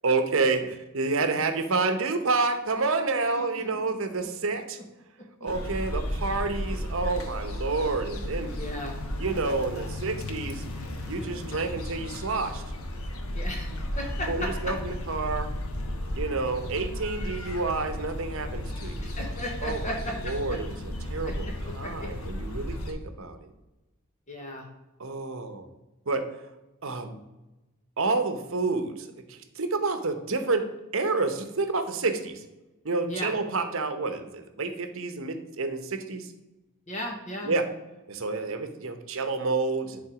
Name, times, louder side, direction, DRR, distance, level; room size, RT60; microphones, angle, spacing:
voice 1, 0.0-4.8 5.4-8.5 9.2-10.6 11.1-12.6 14.3-15.5 16.1-19.1 19.6-19.9 20.2-21.5 21.7-23.4 25.0-25.7 26.1-26.3 26.8-27.2 28.0-32.4 32.8-36.3 37.4-37.7 38.1-40.0, right 3 dB, 60° right, 8 dB, 0.9 m, -29 dB
voice 2, 3.2-3.9 4.2-4.3 5.4-5.5 8.5-9.0 11.4-11.7 13.3-14.8 19.0-20.6 21.2-22.1 24.3-24.7 33.1-33.3 36.9-37.5, left 1 dB, 35° left, 1 dB, 1.1 m, -36 dB
sound 1, 5.5-22.9, left 1 dB, 70° left, 1.1 m, -34 dB
10.5 x 3.8 x 4.9 m, 1.0 s
head